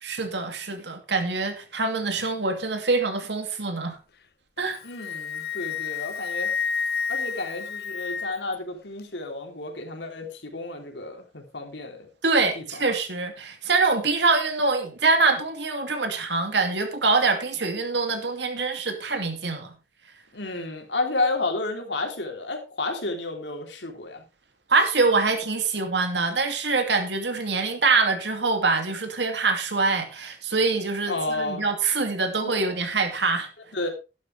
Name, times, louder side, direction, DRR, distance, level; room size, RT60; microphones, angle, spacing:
voice 1, 0.0-4.0 4.6-4.8 12.2-19.7 24.7-33.5, right 3 dB, 75° right, 2.5 m, -24 dB
Wind instrument woodwind instrument, 4.6-8.5, left 6 dB, 60° left, 0.9 m, -30 dB
voice 2, 4.8-6.5 7.1-12.1 12.5-12.6 20.3-24.2 31.1-31.6 32.4-32.5 33.7-33.9, left 2 dB, 85° left, 3.5 m, -31 dB
12.5 x 11.5 x 3.4 m
head